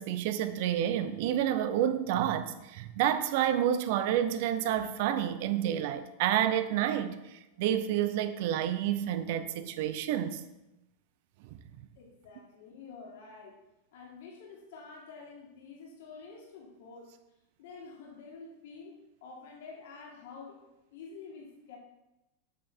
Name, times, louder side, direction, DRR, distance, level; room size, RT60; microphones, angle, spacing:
voice 1, 0.0-10.4, right 10 dB, 60° right, 0.7 m, -29 dB
voice 2, 12.0-13.6 13.9-17.2 17.6-21.8, left 4 dB, 70° left, 2.2 m, -48 dB
8.3 x 5.6 x 4.5 m
supercardioid pair, 140°, 0 cm